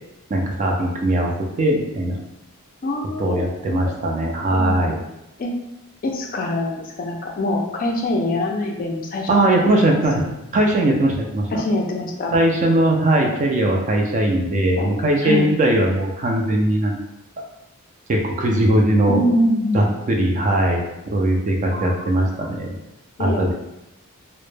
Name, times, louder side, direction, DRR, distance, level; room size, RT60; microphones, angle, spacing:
voice 1, 0.3-2.2 3.2-5.0 9.3-10.2 10.5-11.5 12.3-17.0 18.1-19.2 19.7-20.8 21.1-22.7 23.2-23.5, right 1 dB, 35° right, 0 dB, 0.3 m, -19 dB
voice 2, 2.8-3.4 3.7-3.8 4.5-4.8 5.4-5.5 6.0-9.8 11.5-12.4 14.8-14.9 15.2-15.5 19.1-19.9 21.7-22.3 23.2-23.4, left 1 dB, 40° left, 1 dB, 0.3 m, -24 dB
2.1 x 2.0 x 3.1 m, 0.91 s
head